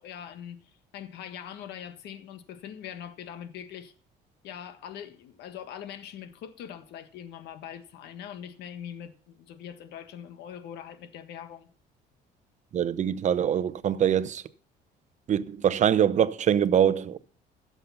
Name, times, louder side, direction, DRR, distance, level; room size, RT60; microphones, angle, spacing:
voice 1, 0.0-3.9 4.4-11.7, left 9 dB, 80° left, 1.5 m, -42 dB
voice 2, 12.7-14.4 15.3-17.2, right 9 dB, 45° right, 0.7 m, -24 dB
15.5 x 7.1 x 5.7 m
cardioid pair, 110°, 17 cm